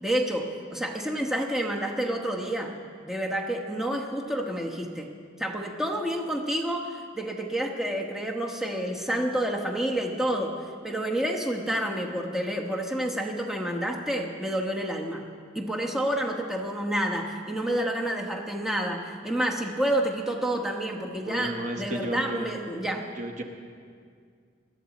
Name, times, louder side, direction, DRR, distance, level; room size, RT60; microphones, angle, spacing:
voice 1, 0.0-2.7 3.1-5.1 5.4-10.5 10.8-15.2 15.5-23.1, right 1 dB, ahead, 1 dB, 1.0 m, -29 dB
voice 2, 21.2-22.5 23.1-23.4, right 1 dB, 40° right, 4 dB, 0.9 m, -33 dB
20.0 x 13.0 x 4.1 m, 2.1 s
head